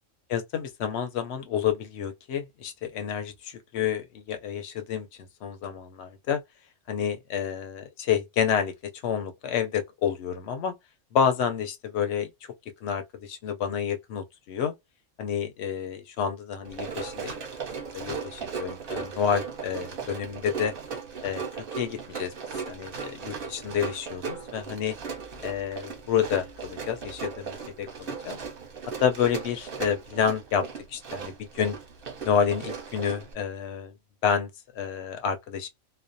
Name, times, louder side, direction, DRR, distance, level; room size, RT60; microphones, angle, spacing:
voice 1, 0.3-6.4 6.9-10.7 11.1-12.3 12.8-14.7 15.2-17.3 17.9-20.7 21.2-22.3 22.7-25.0 25.4-28.4 29.0-31.8 32.2-33.9 34.2-34.5 34.7-35.7, left 8 dB, 65° left, 0.7 m, -29 dB
Run, 16.6-33.3, right 6 dB, 50° right, 0.8 m, -37 dB
2.4 x 2.0 x 2.5 m
omnidirectional pair, 1.5 m